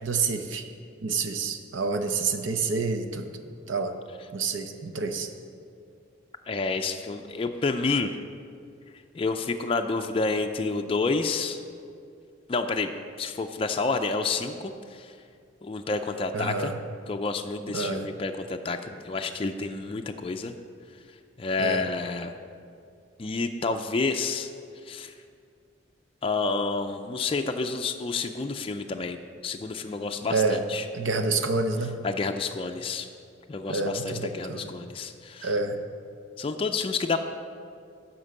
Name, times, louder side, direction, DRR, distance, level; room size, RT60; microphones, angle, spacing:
voice 1, 0.0-0.6 1.0-3.3 3.7-3.9 4.3-5.3 16.3-16.8 17.7-18.1 21.6-21.9 30.3-30.6 30.9-31.9 33.7-34.7 35.4-35.8, right 4 dB, 75° right, 7 dB, 0.7 m, -28 dB
voice 2, 6.5-8.1 9.1-11.6 12.5-12.9 13.2-15.1 15.6-16.7 17.1-20.5 21.4-22.3 23.2-24.5 24.8-25.1 26.2-29.2 29.4-30.9 32.0-33.1 33.5-35.5 36.4-37.2, left 4 dB, 30° left, 5 dB, 0.4 m, -29 dB
11.0 x 4.4 x 6.5 m, 2.3 s
head